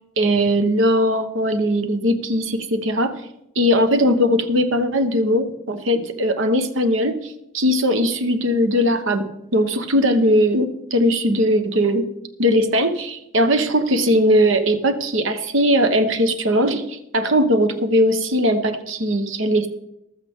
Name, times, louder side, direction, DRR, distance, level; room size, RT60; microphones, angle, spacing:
voice 1, 0.2-3.1 3.5-9.2 9.5-12.0 12.4-19.7, equal, 70° right, 8 dB, 1.2 m, -19 dB
15.0 x 13.0 x 3.7 m, 0.82 s
head